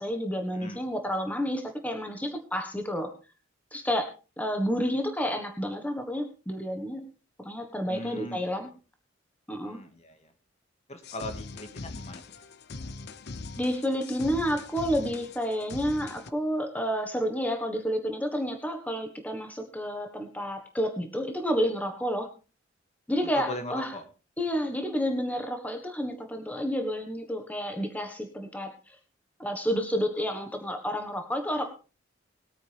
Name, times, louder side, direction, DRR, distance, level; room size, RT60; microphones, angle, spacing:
voice 1, 0.0-3.1 3.7-4.1 4.4-7.0 7.4-8.7 9.5-9.8 13.6-22.3 23.1-23.9 24.4-29.0 29.4-31.6, equal, 10° left, 4 dB, 1.4 m, -30 dB
voice 2, 0.5-0.8 7.9-8.5 9.6-10.3 10.9-12.2 23.2-24.0, left 1 dB, 35° left, 7 dB, 1.8 m, -39 dB
sound 1, 11.0-16.3, left 3 dB, 60° left, 0.8 m, -41 dB
21.0 x 8.9 x 3.5 m, 0.33 s
head